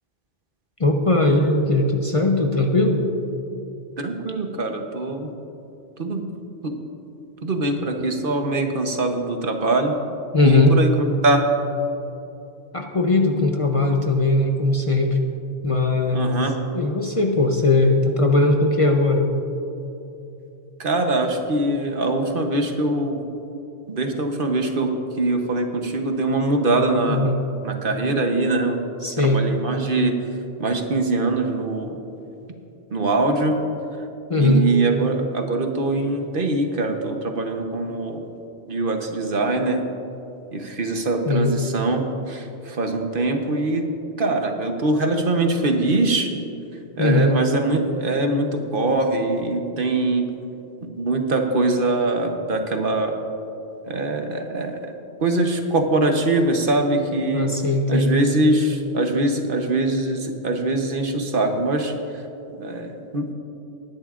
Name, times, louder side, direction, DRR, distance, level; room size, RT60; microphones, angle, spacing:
voice 1, 0.8-3.0 10.3-10.8 12.7-15.2 15.6-16.4 16.7-19.2 27.1-27.4 29.0-29.5 34.3-34.7 41.3-41.5 47.0-47.4 57.3-58.2, left 2 dB, 35° left, 2 dB, 0.8 m, -19 dB
voice 2, 4.0-5.3 6.0-6.2 6.6-6.8 7.4-10.0 10.4-10.9 11.2-11.4 16.1-16.6 20.8-23.2 23.9-27.2 27.6-28.8 29.2-30.2 30.6-32.0 32.9-33.6 34.4-38.2 38.7-39.8 40.5-43.9 44.2-46.3 47.0-50.3 50.8-53.1 53.8-54.9 55.2-57.5 57.9-61.9 62.5-63.3, right 2 dB, 55° right, 4 dB, 1.1 m, -23 dB
20.0 x 10.5 x 2.5 m, 2.8 s
omnidirectional pair, 1.1 m